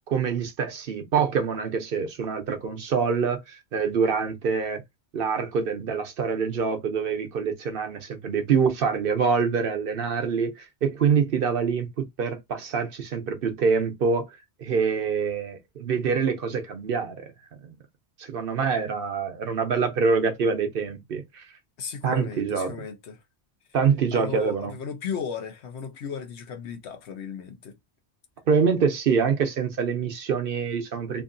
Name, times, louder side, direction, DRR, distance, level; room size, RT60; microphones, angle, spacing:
voice 1, 0.0-4.8 5.1-14.3 14.6-17.2 17.6-17.7 18.2-21.5 22.0-22.7 23.7-24.7 28.5-31.2, right 6 dB, 60° right, 0.9 m, -25 dB
voice 2, 21.8-23.2 24.1-27.8, left 7 dB, 90° left, 1.1 m, -35 dB
2.9 x 2.7 x 2.6 m
omnidirectional pair, 1.1 m